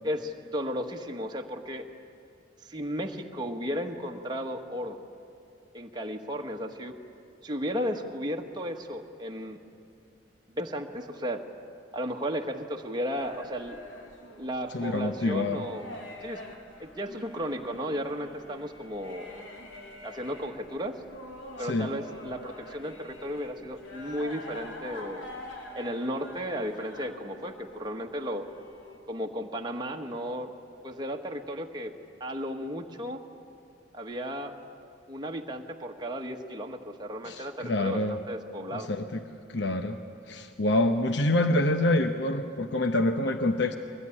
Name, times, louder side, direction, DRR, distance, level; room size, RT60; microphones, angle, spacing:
voice 1, 0.0-1.9 2.6-5.0 5.7-6.9 7.4-9.6 10.6-11.5 11.9-13.8 14.4-15.9 16.2-16.4 16.8-19.4 20.0-21.0 21.6-25.3 25.7-28.5 29.1-30.5 30.8-31.9 32.2-33.2 33.9-34.5 35.1-38.9, equal, 20° right, 2 dB, 1.3 m, -34 dB
sound 1, 13.2-29.0, left 1 dB, 90° left, 3.3 m, -46 dB
voice 2, 14.7-15.6 21.6-21.9 37.2-38.2 38.7-39.2 39.5-40.0 40.3-43.8, left 1 dB, 65° left, 7 dB, 1.0 m, -26 dB
22.5 x 20.0 x 9.9 m, 2.5 s
head